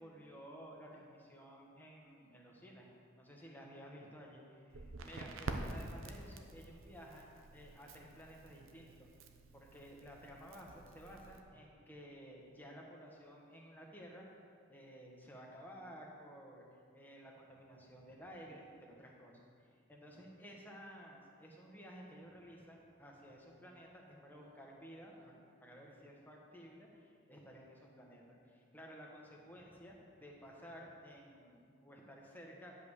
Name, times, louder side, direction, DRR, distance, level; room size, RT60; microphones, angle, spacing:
voice 1, 0.0-2.9 3.2-9.1 9.5-14.3 14.7-25.3 25.6-28.2 28.5-32.7, equal, 10° left, -2 dB, 1.3 m, -54 dB
Crackle, 4.7-11.4, right 2 dB, 85° right, 0.8 m, -48 dB
10.5 x 5.5 x 6.4 m, 2.4 s
head